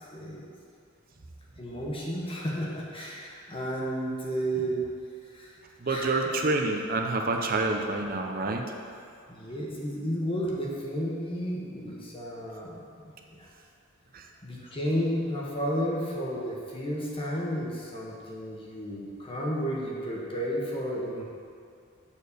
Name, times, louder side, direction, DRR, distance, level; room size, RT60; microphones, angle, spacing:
voice 1, 0.1-0.5 1.6-4.9 5.3-5.5 5.8-6.1 9.3-13.5 14.4-21.2, equal, 25° left, -4 dB, 1.2 m, -32 dB
voice 2, 5.8-8.8 14.1-14.3, right 2 dB, 45° right, 3 dB, 0.7 m, -28 dB
7.2 x 4.3 x 6.7 m, 2.4 s
head